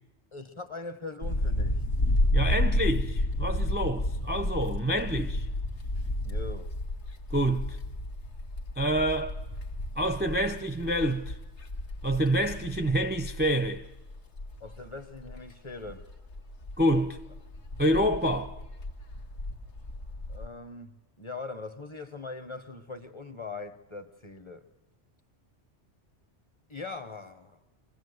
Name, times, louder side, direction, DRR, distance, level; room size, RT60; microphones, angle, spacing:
voice 1, 0.3-1.8 6.2-6.7 14.6-16.1 20.3-24.7 26.7-27.6, left 3 dB, 30° left, 0.8 m, -41 dB
sound 1, 1.2-15.5 15.8-20.5, left 1 dB, 80° left, 1.6 m, -32 dB
voice 2, 2.3-5.5 7.3-7.8 8.8-9.4 10.0-11.4 12.0-13.9 16.8-17.2 17.8-18.6, equal, 15° right, 0.4 m, -27 dB
24.5 x 16.0 x 7.9 m
omnidirectional pair, 1.2 m